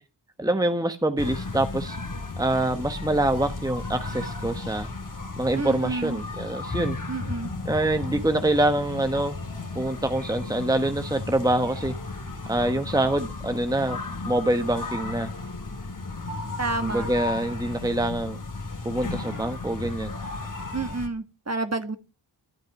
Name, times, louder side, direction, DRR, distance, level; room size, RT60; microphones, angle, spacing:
voice 1, 0.4-2.0 2.4-4.9 5.4-7.0 7.7-9.4 9.7-11.9 12.5-14.0 14.2-15.3 16.8-18.4 18.8-20.1, right 1 dB, 10° right, 8 dB, 1.2 m, -25 dB
sound 1, 1.2-21.1, left 3 dB, 45° left, 2.6 m, -34 dB
voice 2, 5.5-6.2 7.1-7.5 16.6-17.1 20.7-22.0, right 3 dB, 35° right, 9 dB, 1.7 m, -29 dB
12.0 x 10.0 x 5.9 m, 0.33 s
wide cardioid pair, 70°, 44 cm